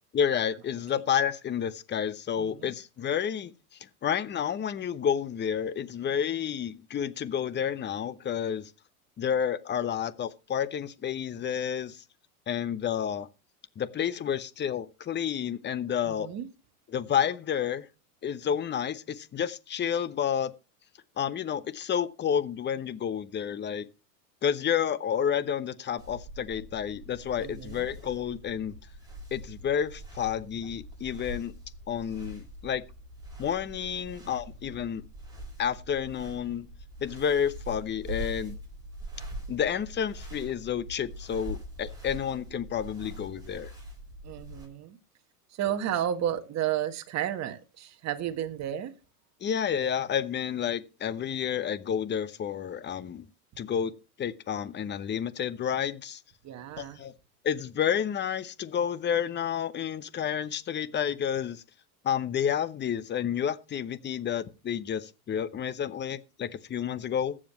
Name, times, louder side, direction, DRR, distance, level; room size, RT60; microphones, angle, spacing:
voice 1, 0.1-8.7 9.2-12.0 12.5-13.3 13.8-16.3 16.9-17.9 18.2-20.5 21.2-23.9 24.4-28.8 29.3-31.5 31.9-32.8 33.4-35.0 35.6-36.7 37.0-38.6 39.5-43.7 49.4-53.3 53.6-53.9 54.2-56.2 56.8-57.1 57.4-61.6 62.0-67.4, left 8 dB, 25° left, 0.8 m, -30 dB
voice 2, 2.4-2.7 16.1-16.5 27.4-27.9 44.2-45.0 45.5-48.9 56.4-57.0, right 11 dB, 35° right, 1.5 m, -32 dB
sound 1, 26.0-44.7, right 1 dB, 10° right, 7.3 m, -43 dB
21.0 x 7.5 x 3.1 m
hypercardioid pair, 100°, 46 cm